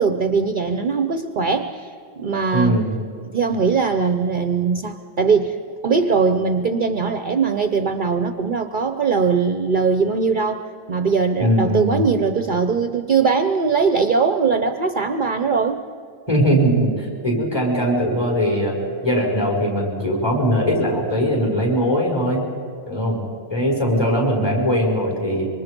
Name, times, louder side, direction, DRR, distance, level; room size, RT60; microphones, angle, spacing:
voice 1, 0.0-2.8 3.3-5.6 5.8-15.8, right 5 dB, 50° right, 8 dB, 0.9 m, -20 dB
voice 2, 2.5-2.9 11.4-12.0 16.3-18.8 19.0-22.4 22.8-23.2 23.5-25.5, equal, 20° left, -2 dB, 6.4 m, -20 dB
26.0 x 24.5 x 5.3 m, 2.5 s
omnidirectional pair, 1.2 m